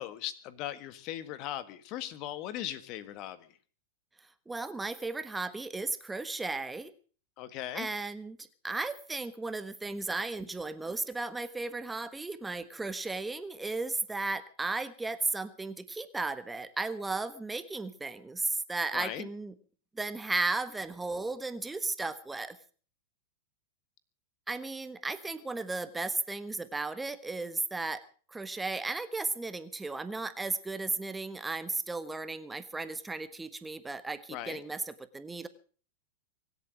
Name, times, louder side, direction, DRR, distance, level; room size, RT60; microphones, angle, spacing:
voice 1, 0.0-3.5 7.4-7.9 18.9-19.3 34.3-34.6, left 12 dB, 45° left, 13 dB, 1.6 m, -38 dB
voice 2, 4.5-6.9 7.7-8.4 8.6-19.5 19.9-22.6 24.5-28.0 28.3-35.5, right 3 dB, 10° right, 11 dB, 1.4 m, -35 dB
24.0 x 8.4 x 6.3 m, 0.41 s
hypercardioid pair, 110°, 0 cm